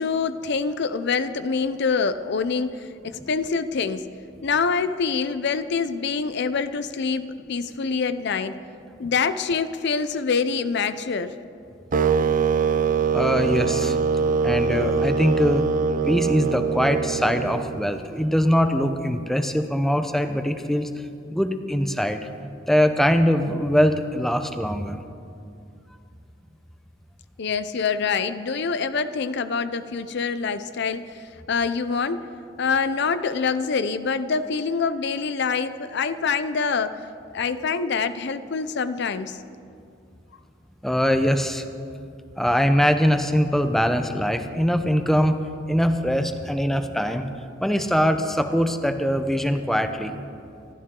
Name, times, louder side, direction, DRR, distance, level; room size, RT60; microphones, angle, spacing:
voice 1, 0.0-8.6 9.0-11.3 27.4-32.2 32.6-37.0 37.3-39.4, left 5 dB, 60° left, 12 dB, 0.6 m, -25 dB
sound 1, 11.9-18.0, right 5 dB, 45° right, 0.5 m, -23 dB
voice 2, 13.1-14.0 14.4-15.6 16.1-20.9 21.3-22.2 22.7-25.0 40.8-41.6 42.4-45.4 45.7-47.3 47.6-50.1, equal, ahead, 7 dB, 0.7 m, -22 dB
27.5 x 12.5 x 3.8 m, 2.4 s
head